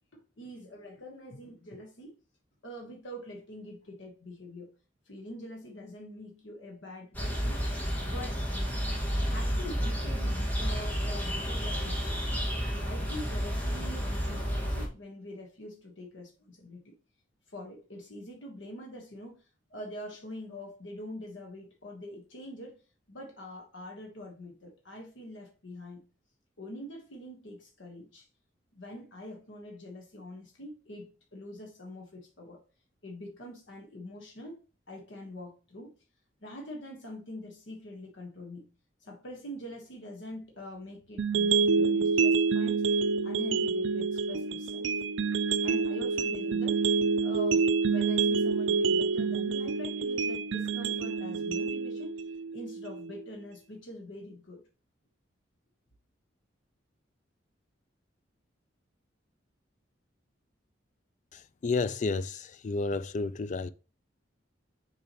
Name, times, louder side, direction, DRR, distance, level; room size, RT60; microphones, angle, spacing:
voice 1, 0.1-2.1 2.6-4.7 5.1-7.6 8.0-8.4 9.2-12.3 12.8-16.9 17.5-22.8 23.1-26.0 26.6-28.3 28.7-32.6 33.0-34.6 34.9-35.9 36.4-38.7 39.0-44.9 45.6-46.8 47.2-52.2 52.5-54.6, left 1 dB, 75° left, 1.4 m, -44 dB
sound 1, 7.1-14.9, equal, 10° left, 1.8 m, -31 dB
Bell Master a, 41.2-53.2, right 4 dB, 80° right, 0.4 m, -27 dB
voice 2, 61.3-63.7, left 3 dB, 40° left, 0.4 m, -31 dB
6.9 x 4.6 x 3.0 m
head